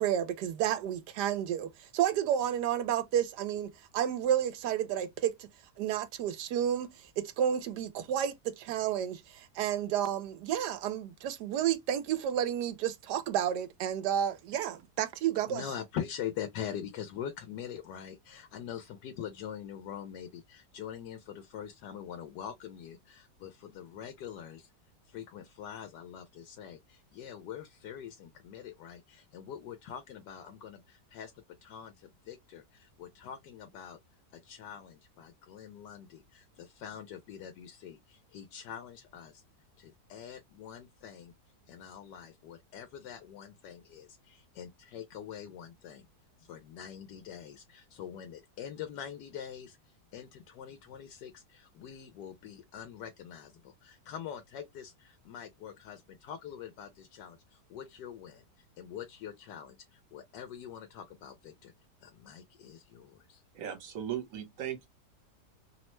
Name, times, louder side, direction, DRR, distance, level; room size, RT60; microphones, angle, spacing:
voice 1, 0.0-5.3 5.8-15.6, right 10 dB, 80° right, 1.2 m, -31 dB
voice 2, 15.5-24.7 25.1-31.3 31.6-34.0 34.3-39.4 39.8-41.3 41.7-46.1 46.4-61.7 62.0-63.4, left 9 dB, 85° left, 1.2 m, -44 dB
voice 3, 63.5-64.9, right 10 dB, 55° right, 1.3 m, -37 dB
3.1 x 2.1 x 3.0 m
omnidirectional pair, 1.8 m